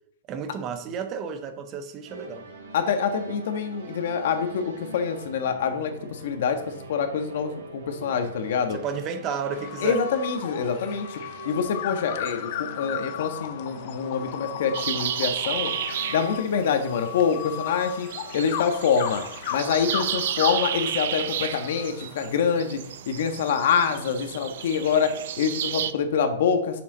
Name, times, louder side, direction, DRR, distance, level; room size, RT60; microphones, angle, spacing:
voice 1, 0.3-2.5 8.7-10.0, right 6 dB, 25° right, 0.8 m, -32 dB
sound 1, 2.1-16.4, right 2 dB, 80° right, 3.4 m, -43 dB
voice 2, 2.7-8.8 9.8-11.2 11.4-15.7 16.1-18.1 18.3-19.2 19.5-26.8, left 6 dB, 55° left, 1.3 m, -26 dB
sound 2, 9.5-22.3, left 12 dB, 40° left, 0.5 m, -36 dB
sound 3, 14.7-25.9, right 10 dB, 55° right, 0.5 m, -32 dB
9.3 x 6.8 x 3.9 m
hypercardioid pair, 170°, 0 cm